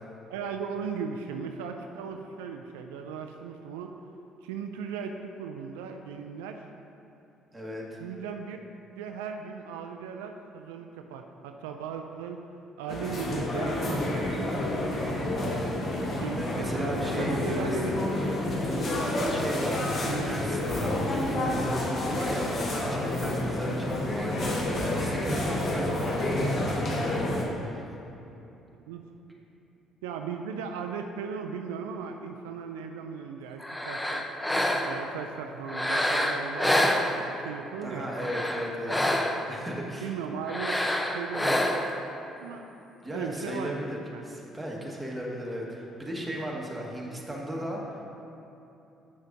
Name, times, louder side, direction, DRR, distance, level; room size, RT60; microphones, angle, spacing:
voice 1, 0.3-3.9 4.4-6.6 8.0-8.6 9.0-12.4 12.8-14.5 16.2-17.9 20.0-20.4 28.9-29.0 30.0-34.2 34.8-38.1 40.0-41.7 42.4-42.7 43.1-43.8 44.1-44.3, right 6 dB, 85° right, 4 dB, 0.3 m, -37 dB
voice 2, 7.5-8.0 16.4-17.8 18.6-27.8 37.8-39.0 39.5-40.1 43.0-48.0, equal, 10° right, -3 dB, 1.5 m, -36 dB
sound 1, 12.9-27.4, left 1 dB, 50° left, 1.1 m, -29 dB
sound 2, 33.6-35.1 35.7-37.5 38.1-39.6 40.4-42.0, left 1 dB, 10° left, 0.6 m, -27 dB
8.3 x 6.3 x 2.6 m, 2.9 s
hypercardioid pair, 55°, 0 cm